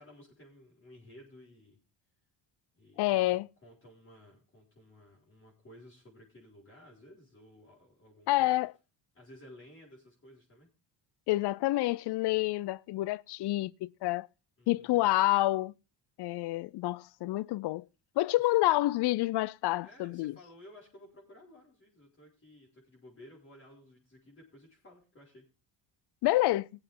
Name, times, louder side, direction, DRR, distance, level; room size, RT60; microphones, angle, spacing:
voice 1, 0.0-1.8 2.7-8.6 9.1-10.7 14.6-15.2 18.3-18.5 19.7-25.4, left 1 dB, 25° left, 5.8 m, -55 dB
voice 2, 3.0-3.5 8.3-8.7 11.3-14.3 14.7-15.7 16.2-17.8 18.2-20.3 26.2-26.7, left 17 dB, 60° left, 0.5 m, -28 dB
19.0 x 8.0 x 3.7 m
cardioid pair, 100°, 46 cm